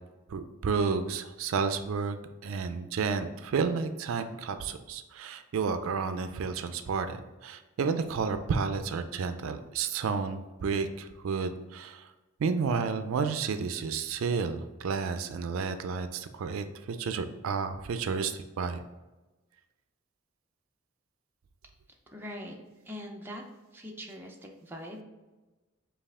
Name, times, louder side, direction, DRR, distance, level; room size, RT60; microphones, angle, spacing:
voice 1, 0.3-12.1 12.4-18.8, right 5 dB, 75° right, 10 dB, 0.4 m, -31 dB
voice 2, 22.1-22.6 22.8-23.4 23.7-25.0, equal, 10° right, 0 dB, 0.5 m, -42 dB
5.3 x 2.4 x 3.5 m, 1.1 s
head